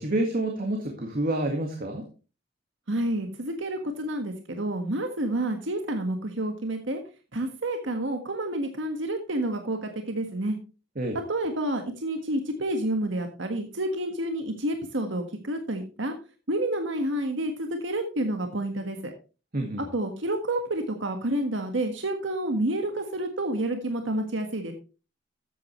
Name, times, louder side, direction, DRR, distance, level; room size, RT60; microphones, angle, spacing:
voice 1, 0.0-2.1 11.0-11.2 19.5-19.8, right 1 dB, 50° right, 3 dB, 1.8 m, -28 dB
voice 2, 2.9-7.0 7.3-10.6 11.3-16.1 16.5-19.1 19.9-24.7, right 1 dB, 85° right, 5 dB, 1.6 m, -29 dB
13.0 x 8.6 x 3.1 m, 0.33 s
head